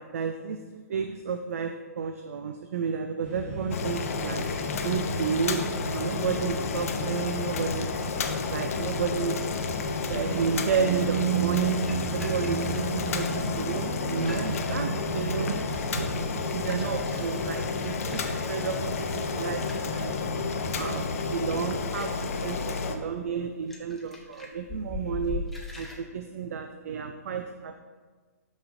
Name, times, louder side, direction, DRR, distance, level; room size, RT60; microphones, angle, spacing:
voice 1, 0.0-4.4 4.8-7.9 8.5-9.5 10.1-20.2 20.8-25.5 25.8-27.8, right 7 dB, 60° right, 7 dB, 0.4 m, -31 dB
sound 1, 3.2-21.8, equal, 30° right, 1.7 m, -36 dB
Boiling, 3.7-23.0, left 5 dB, 60° left, 0.6 m, -32 dB
sound 2, 11.8-26.0, left 3 dB, ahead, 0.8 m, -43 dB
12.0 x 4.1 x 2.6 m, 1.5 s
figure-of-eight pair, 125°, 9 cm